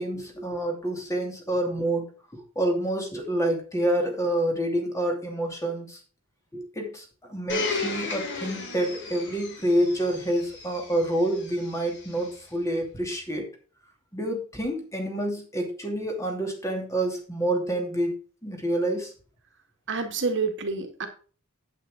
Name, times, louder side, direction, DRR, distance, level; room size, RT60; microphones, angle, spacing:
voice 1, 0.0-2.0 2.3-6.0 6.5-13.5 14.1-18.1 18.4-19.1, right 1 dB, 15° left, 2 dB, 2.7 m, -28 dB
Domestic sounds home sounds, 7.5-12.3 13.1-13.2, left 3 dB, 55° left, 3.0 m, -35 dB
voice 2, 19.9-21.1, right 4 dB, 55° right, 5 dB, 1.8 m, -28 dB
8.9 x 8.8 x 3.7 m, 0.38 s
head